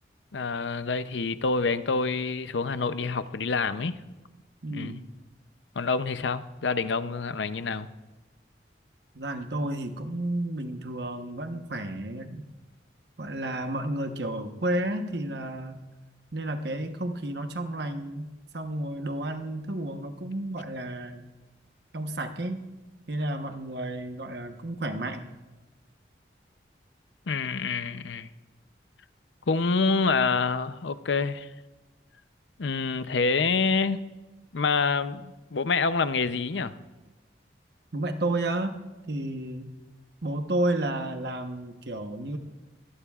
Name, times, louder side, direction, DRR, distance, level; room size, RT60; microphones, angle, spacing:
voice 1, 0.3-4.0 4.7-5.0 5.8-7.9 27.3-28.3 29.5-31.5 32.6-34.1 34.5-36.8, left 4 dB, 85° left, 12 dB, 0.6 m, -27 dB
voice 2, 4.6-5.0 9.1-12.5 13.2-15.8 16.3-21.3 21.9-22.7 23.1-25.3 37.9-38.8 39.1-39.7 40.2-42.4, right 1 dB, 70° right, 6 dB, 1.1 m, -31 dB
23.5 x 18.0 x 2.4 m, 1.1 s
head